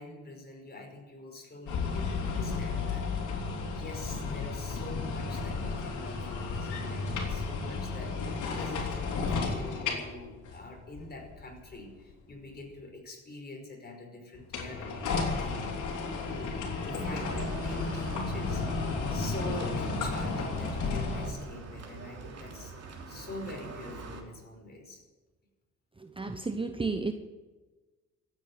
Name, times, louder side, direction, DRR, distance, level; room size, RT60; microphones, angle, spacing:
voice 1, 0.0-3.1 3.7-22.7 23.1-25.0, left 2 dB, 35° left, 2 dB, 5.4 m, -45 dB
sound 1, 1.7-12.0 14.3-21.3, left 4 dB, 75° left, 3.5 m, -33 dB
sound 2, 17.0-24.2, right 4 dB, 55° right, 3.3 m, -44 dB
voice 2, 26.0-27.1, right 3 dB, 15° right, 8 dB, 0.9 m, -32 dB
15.0 x 9.2 x 9.9 m, 1.3 s
cardioid pair, 90°, 30 cm